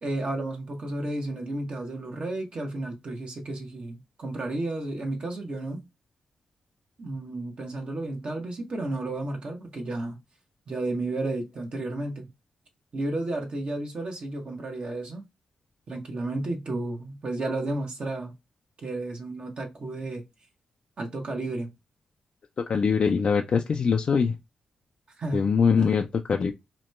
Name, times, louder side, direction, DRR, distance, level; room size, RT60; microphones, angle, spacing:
voice 1, 0.0-5.8 7.0-10.2 10.7-12.3 12.9-15.2 15.9-18.3 18.8-20.2 21.0-21.7 25.2-25.5 25.8-25.9, right 2 dB, 55° right, 0.8 m, -32 dB
voice 2, 22.7-24.3 25.3-26.5, left 6 dB, 55° left, 0.3 m, -23 dB
2.9 x 2.1 x 3.0 m
cardioid pair, 55°, 2 cm